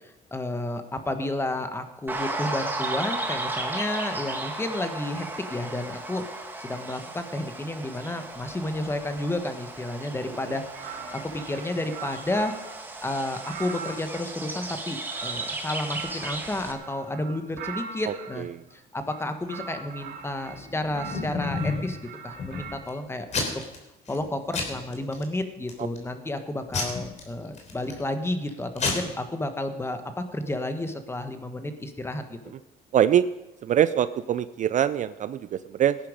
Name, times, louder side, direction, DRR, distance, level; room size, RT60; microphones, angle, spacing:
voice 1, 0.3-6.2 6.6-12.5 13.0-22.0 22.2-23.5 24.1-32.5, left 1 dB, 15° left, 8 dB, 1.4 m, -31 dB
sound 1, 2.1-16.7, right 2 dB, 10° right, 1.8 m, -35 dB
sound 2, 10.7-12.8 13.3-18.4 19.0-20.6 20.9-22.9, right 6 dB, 85° right, 2.2 m, -41 dB
Packing tape duct tape / Tearing, 20.5-21.9 22.4-22.9 23.3-23.8 24.1-24.3 24.5-25.2 25.7-26.1 26.7-28.0 28.5-28.6 28.8-28.9, left 4 dB, 45° left, 3.3 m, -30 dB
voice 2, 32.9-33.2 33.6-36.0, right 10 dB, 45° right, 14 dB, 0.5 m, -23 dB
17.5 x 10.5 x 5.1 m, 1.0 s
cardioid pair, 110°, 17 cm